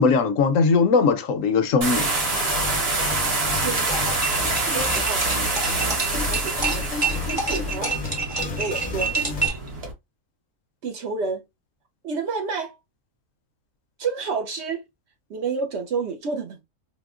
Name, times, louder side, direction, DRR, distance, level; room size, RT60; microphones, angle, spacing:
voice 1, 0.0-2.1, left 4 dB, 70° left, 0.9 m, -19 dB
sound 1, 1.8-9.9, right 3 dB, 50° right, 1.1 m, -26 dB
sound 2, 2.3-9.5, left 4 dB, 45° left, 0.6 m, -33 dB
voice 2, 3.5-4.1 4.6-5.2 6.1-6.8 7.3-7.9 8.3-9.1 10.8-11.4 12.0-12.8 14.0-14.8 15.3-16.6, right 5 dB, 65° right, 0.8 m, -30 dB
sound 3, 3.9-9.7, right 4 dB, 25° right, 0.9 m, -28 dB
4.8 x 2.1 x 2.4 m
omnidirectional pair, 1.5 m